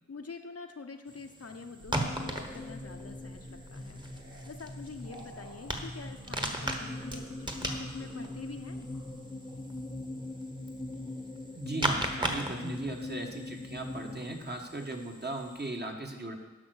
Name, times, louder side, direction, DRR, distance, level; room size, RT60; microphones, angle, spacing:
voice 1, 0.1-8.9, left 4 dB, 50° left, 5 dB, 0.8 m, -46 dB
sound 1, 1.1-15.7, right 1 dB, 15° right, 1.3 m, -39 dB
sound 2, 1.8-11.8, right 1 dB, 75° right, 2.7 m, -55 dB
sound 3, 1.9-14.4, left 2 dB, 15° left, 0.6 m, -42 dB
voice 2, 11.5-16.3, right 2 dB, 35° right, 2 dB, 1.4 m, -37 dB
11.0 x 5.8 x 6.3 m, 1.2 s
wide cardioid pair, 70°, 31 cm